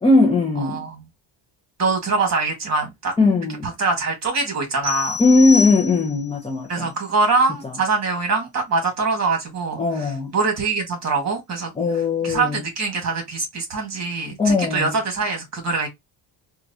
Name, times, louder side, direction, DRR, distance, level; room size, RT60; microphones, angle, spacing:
voice 1, 0.0-0.8 3.2-3.7 5.2-6.9 9.8-10.3 11.8-12.6 14.4-14.9, left 3 dB, 15° left, 0.5 m, -18 dB
voice 2, 0.6-1.0 1.8-3.1 3.8-5.2 6.7-11.7 12.2-15.9, right 3 dB, 35° right, 1.7 m, -23 dB
sound 1, 4.8-6.4, left 5 dB, 20° right, 2.8 m, -27 dB
4.4 x 2.4 x 2.7 m
cardioid pair, 145°, 47 cm